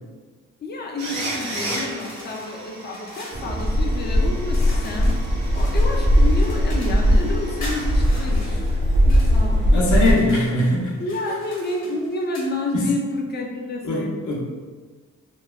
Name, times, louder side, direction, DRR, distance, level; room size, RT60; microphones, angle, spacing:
voice 1, 0.6-5.2 5.5-9.7 10.3-10.4 11.0-14.4, left 2 dB, 35° left, 1 dB, 0.4 m, -29 dB
sound 1, 1.0-8.4 8.7-8.8 11.7-11.8, right 1 dB, 65° right, 0.7 m, -36 dB
sound 2, 1.2-3.4 4.5-7.1 7.6-9.3 9.8-10.5 11.0-12.5, left 1 dB, 60° left, 1.1 m, -41 dB
sound 3, 3.3-10.1, equal, 35° right, 0.5 m, -19 dB
voice 2, 9.7-10.9 12.7-12.9 13.8-14.4, left 1 dB, 80° left, -4 dB, 0.8 m, -21 dB
2.9 x 2.0 x 2.3 m, 1.4 s
cardioid pair, 90°, 30 cm